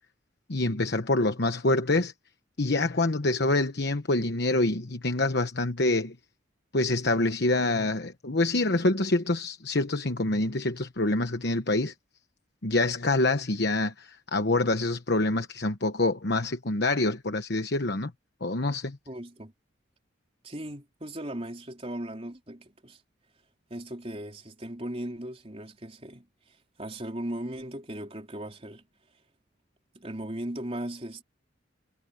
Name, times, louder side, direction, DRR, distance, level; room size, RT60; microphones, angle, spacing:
voice 1, 0.5-2.1 2.6-6.2 6.7-11.9 12.6-18.1 18.4-19.0, left 2 dB, 55° left, 1.2 m, -26 dB
voice 2, 19.1-19.5 20.4-23.0 23.7-28.8 29.9-31.2, right 1 dB, 30° right, 4.0 m, -37 dB
head